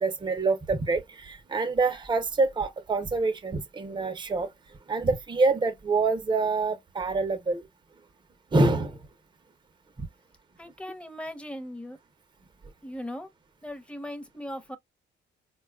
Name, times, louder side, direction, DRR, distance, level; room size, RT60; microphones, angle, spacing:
voice 1, 0.0-4.5 4.9-7.6 8.5-8.9, right 3 dB, 25° right, 0.7 m, -26 dB
voice 2, 10.6-12.0 12.8-13.3 13.6-14.8, equal, 5° left, 0.9 m, -38 dB
3.9 x 2.3 x 2.3 m
cardioid pair, 90°, 20 cm